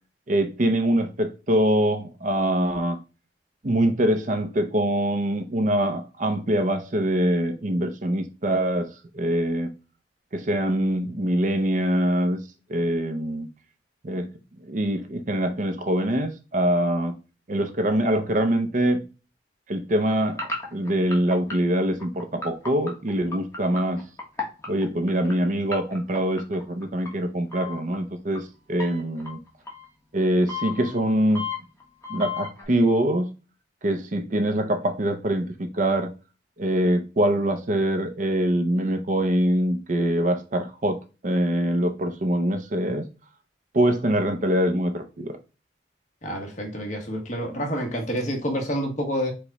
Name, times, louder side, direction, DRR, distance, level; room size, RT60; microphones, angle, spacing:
voice 1, 0.3-3.0 3.6-8.9 9.1-9.7 10.3-12.4 12.7-13.5 14.0-14.3 14.6-17.1 17.5-19.0 19.7-24.0 24.7-29.4 30.1-31.5 32.1-33.3 33.8-36.1 36.6-41.0 41.2-43.0 43.7-45.4, right 1 dB, 45° right, 0.6 m, -24 dB
sound 1, 20.3-25.3 25.7-27.1 27.5-28.0 28.3-28.4 28.8-29.8 30.5-32.6, left 4 dB, 15° left, 1.1 m, -33 dB
voice 2, 46.2-49.3, equal, 40° left, 1.2 m, -28 dB
4.9 x 2.3 x 4.0 m
head